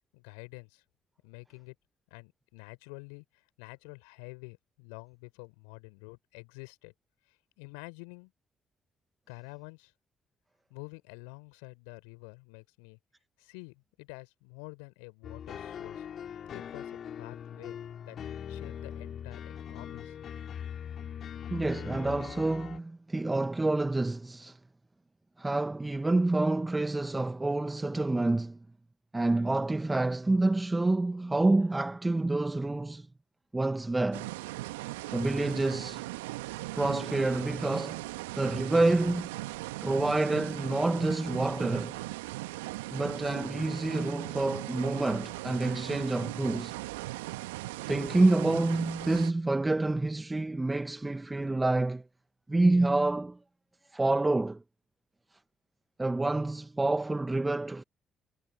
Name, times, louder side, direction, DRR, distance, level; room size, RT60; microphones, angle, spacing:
voice 1, 0.1-0.8 1.2-1.7 2.1-6.9 7.3-8.3 9.3-9.9 10.7-13.0 13.4-16.1 16.3-17.8 18.0-18.2 18.5-20.2, left 37 dB, 75° left, 4.4 m, -48 dB
sound 1, 15.2-22.8, left 8 dB, 55° left, 2.7 m, -41 dB
voice 2, 21.5-24.6 25.4-28.6 29.1-33.1 33.5-34.3 35.1-36.1 36.7-38.0 38.3-39.3 39.8-42.0 42.9-46.8 47.9-52.0 52.5-53.4 53.9-54.6 56.0-57.8, right 2 dB, 20° right, 1.7 m, -28 dB
sound 2, 34.1-49.3, right 20 dB, 80° right, 1.7 m, -39 dB
figure-of-eight pair, 40°, 0 cm